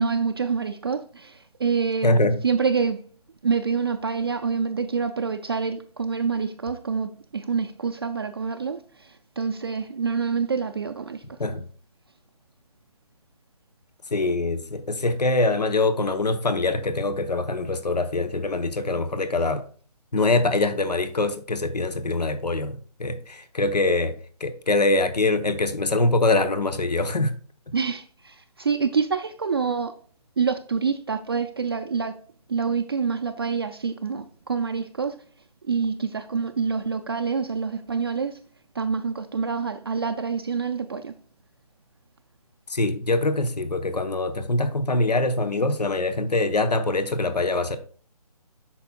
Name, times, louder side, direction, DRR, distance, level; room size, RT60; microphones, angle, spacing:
voice 1, 0.0-3.0 3.4-11.2 27.7-29.9 30.4-32.2 32.5-35.2 35.6-38.4 38.7-41.1, right 5 dB, 40° right, 0.4 m, -26 dB
voice 2, 2.0-2.4 11.4-11.6 14.1-19.6 20.1-24.1 24.4-27.3 42.7-47.8, left 2 dB, 90° left, 0.8 m, -23 dB
8.1 x 5.9 x 2.3 m
figure-of-eight pair, 155°, 20 cm